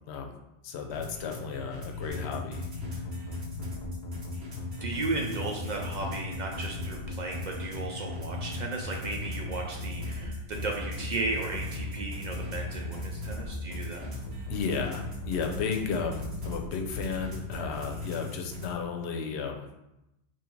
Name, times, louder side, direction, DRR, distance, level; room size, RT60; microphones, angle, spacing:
voice 1, 0.6-3.0 13.9-14.0 14.5-19.7, left 6 dB, 85° left, 2 dB, 0.9 m, -34 dB
sound 1, 0.9-18.7, left 2 dB, 85° right, 1.5 m, -40 dB
sound 2, 2.1-17.6, left 1 dB, 55° left, 0.6 m, -38 dB
voice 2, 4.8-14.1, right 3 dB, 55° right, 0 dB, 0.5 m, -35 dB
3.1 x 2.6 x 4.3 m, 0.91 s
omnidirectional pair, 1.1 m